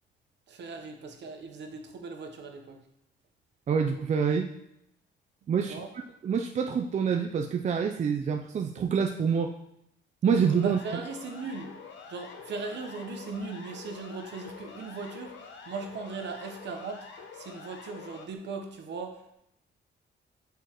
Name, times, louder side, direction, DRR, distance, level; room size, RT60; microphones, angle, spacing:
voice 1, 0.5-2.8 5.7-5.9 10.6-11.7 12.1-19.4, right 4 dB, 60° right, 4 dB, 1.0 m, -38 dB
voice 2, 3.7-4.5 5.5-5.7 6.2-9.5 10.2-10.8, right 6 dB, 35° right, 4 dB, 0.4 m, -26 dB
Siren, 10.3-18.3, left 5 dB, 70° left, 0.8 m, -46 dB
6.8 x 4.6 x 3.0 m, 0.81 s
cardioid pair, 90°, 20 cm